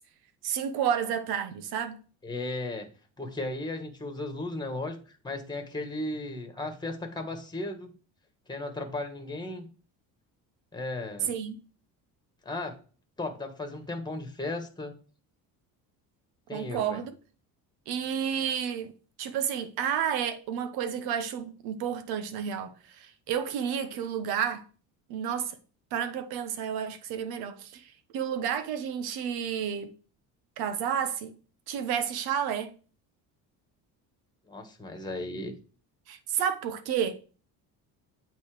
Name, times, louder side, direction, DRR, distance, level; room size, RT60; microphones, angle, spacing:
voice 1, 0.4-2.0 11.2-11.5 16.5-17.1 17.9-18.9 19.2-24.6 25.1-25.6 25.9-29.9 30.6-31.3 31.7-32.7 36.1-37.2, right 8 dB, 80° right, 1.2 m, -31 dB
voice 2, 2.2-2.9 3.2-5.0 5.2-7.9 8.5-9.7 10.7-11.3 12.4-12.8 13.2-14.9 16.5-17.0 34.5-35.5, left 2 dB, 10° left, 1.6 m, -35 dB
8.4 x 4.1 x 5.0 m
cardioid pair, 120°, 37 cm